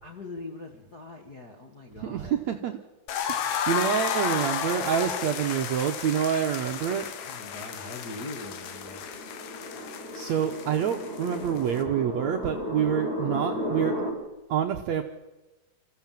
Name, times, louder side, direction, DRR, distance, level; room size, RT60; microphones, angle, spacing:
voice 1, 0.0-2.3 6.8-7.0 7.3-9.1, left 2 dB, 40° left, 0 dB, 1.4 m, -42 dB
voice 2, 2.0-2.8 3.3-7.1 9.8-13.9 14.5-15.0, right 9 dB, 70° right, 4 dB, 1.7 m, -27 dB
sound 1, 3.1-11.8, left 8 dB, 80° left, 3.3 m, -33 dB
sound 2, 6.4-14.1, left 1 dB, 15° left, 5.0 m, -35 dB
26.0 x 15.0 x 7.6 m, 1.1 s
omnidirectional pair, 4.3 m